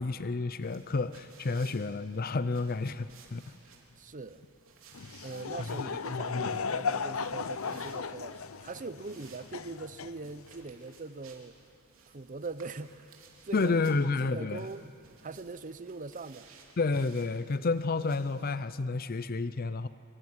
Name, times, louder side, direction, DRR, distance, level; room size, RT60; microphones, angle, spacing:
voice 1, 0.0-3.4 5.6-6.5 13.5-14.7 16.8-19.9, left 3 dB, 45° left, 13 dB, 0.6 m, -30 dB
sound 1, 0.6-18.5, right 5 dB, 75° right, 3.8 m, -58 dB
voice 2, 3.9-4.4 5.2-11.5 12.1-13.1 13.5-14.8 15.2-16.5, right 3 dB, 40° right, 14 dB, 0.7 m, -42 dB
Laughter / Crowd, 4.9-10.7, left 5 dB, 85° left, 0.7 m, -36 dB
24.5 x 24.0 x 9.6 m, 2.7 s
head